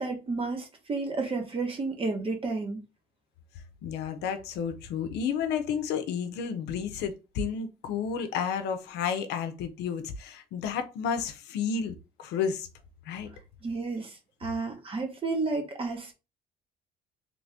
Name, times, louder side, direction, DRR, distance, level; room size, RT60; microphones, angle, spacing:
voice 1, 0.0-2.8 13.6-16.1, right 3 dB, 35° right, 1.1 m, -31 dB
voice 2, 3.8-12.7 13.1-13.3, left 7 dB, 85° left, 0.6 m, -31 dB
3.1 x 2.6 x 3.4 m
cardioid pair, 110°, 17 cm